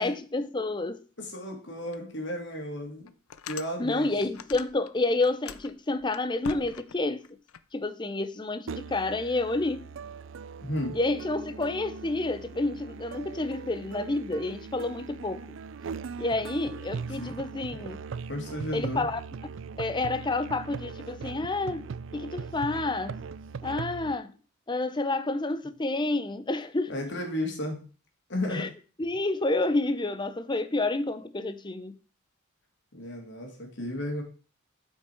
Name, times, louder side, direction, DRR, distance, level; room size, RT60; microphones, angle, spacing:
voice 1, 0.0-1.0 3.8-7.4 7.7-9.9 10.9-15.4 16.2-18.0 18.7-19.2 19.8-23.2 23.6-24.4 24.7-26.9 28.5-28.7 29.0-32.0, left 2 dB, 20° left, 0.6 m, -29 dB
voice 2, 1.2-3.1 3.4-4.1 10.6-11.0 17.2-17.3 18.3-19.1 26.9-27.8 28.3-28.7 32.9-34.2, left 1 dB, 55° left, 2.7 m, -33 dB
sound 1, 1.9-2.0 2.5-2.6 3.1-4.9 5.2-7.6, left 7 dB, 90° left, 0.6 m, -43 dB
Musical instrument, 8.7-24.2, right 5 dB, 60° right, 0.4 m, -40 dB
8.2 x 5.8 x 4.5 m
head